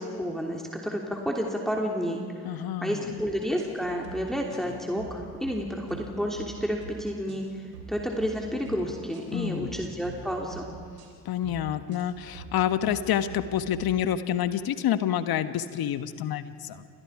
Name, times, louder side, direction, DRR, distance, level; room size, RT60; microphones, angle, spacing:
voice 1, 0.0-2.2 2.8-7.4 7.9-10.7, equal, ahead, 0 dB, 3.1 m, -30 dB
voice 2, 2.4-3.2 9.3-9.8 11.2-16.9, left 10 dB, 50° left, 11 dB, 1.4 m, -28 dB
sound 1, 3.2-3.3 3.6-4.2 4.5-4.7 5.0-5.5 5.9-6.1 6.3-6.9 7.3-7.5 7.7-8.3 8.7-8.8 9.1-9.7 10.0-10.2 10.5-11.1 11.4-11.6 11.9-12.5 12.8-13.0 13.3-13.8, right 7 dB, 85° right, 3.6 m, -45 dB
29.0 x 25.5 x 5.0 m, 2.2 s
hypercardioid pair, 60°, 46 cm